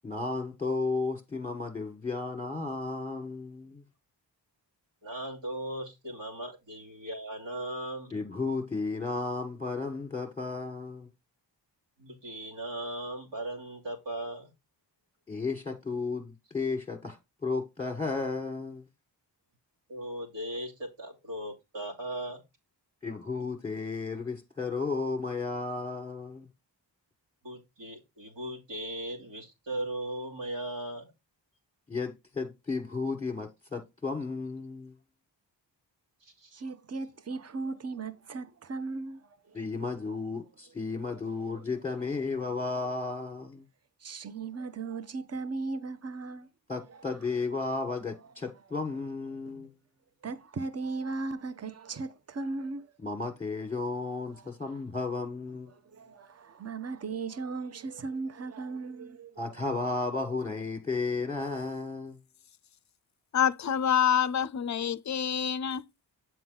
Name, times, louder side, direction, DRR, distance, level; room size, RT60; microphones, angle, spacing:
voice 1, 0.0-3.8 8.1-11.1 15.3-18.8 23.0-26.5 31.9-34.9 39.5-43.6 46.7-49.7 53.0-55.7 59.4-62.2, left 3 dB, 10° left, 1.5 m, -33 dB
voice 2, 5.0-8.1 12.0-14.5 19.9-22.4 27.4-31.1 36.2-36.6, right 1 dB, 80° right, 2.8 m, -38 dB
voice 3, 36.5-39.6 40.8-41.6 41.9-42.1 44.0-46.5 46.9-47.1 50.2-52.9 54.3-54.8 55.7-59.6, right 3 dB, 35° right, 0.8 m, -38 dB
voice 4, 63.3-65.8, left 8 dB, 40° left, 0.5 m, -27 dB
7.7 x 4.9 x 3.9 m
cardioid pair, 55°, 44 cm